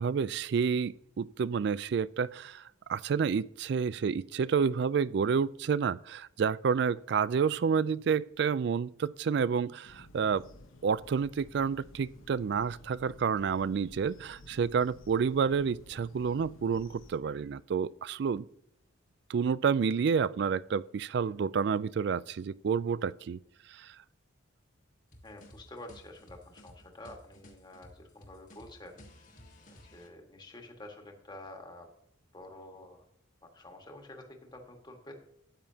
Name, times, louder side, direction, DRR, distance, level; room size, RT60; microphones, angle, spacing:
voice 1, 0.0-2.6 2.9-10.5 10.8-18.5 19.3-23.4 23.7-23.9, right 6 dB, 55° right, 0.3 m, -29 dB
sound 1, 9.8-17.2, left 1 dB, 80° left, 1.0 m, -54 dB
sound 2, 25.1-30.1, left 1 dB, 40° left, 1.6 m, -55 dB
voice 2, 25.2-29.3 29.7-31.9 32.3-33.0 33.4-35.1, left 1 dB, 20° left, 1.6 m, -49 dB
12.5 x 9.1 x 2.8 m
head